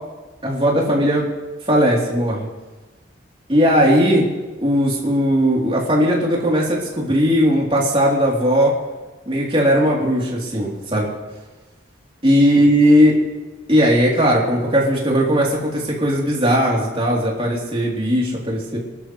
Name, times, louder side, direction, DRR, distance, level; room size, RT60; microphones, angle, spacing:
voice 1, 0.4-1.3 1.7-2.5 3.5-4.3 4.6-8.7 9.3-11.1 12.2-13.2 13.7-18.8, equal, 30° right, -3 dB, 3.5 m, -17 dB
26.0 x 12.5 x 3.3 m, 1.2 s
head